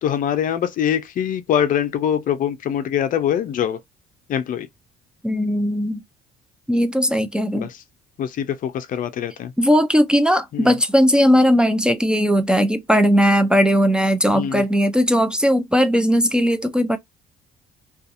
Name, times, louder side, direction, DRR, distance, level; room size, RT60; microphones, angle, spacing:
voice 1, 0.0-3.8 4.3-4.7 7.5-7.8 8.2-9.5 10.5-10.8 14.3-14.6, left 9 dB, 55° left, 0.4 m, -23 dB
voice 2, 5.2-6.0 6.7-7.7 9.6-17.0, equal, 5° right, 0.4 m, -18 dB
2.6 x 2.3 x 2.5 m
cardioid pair, 110°, 17 cm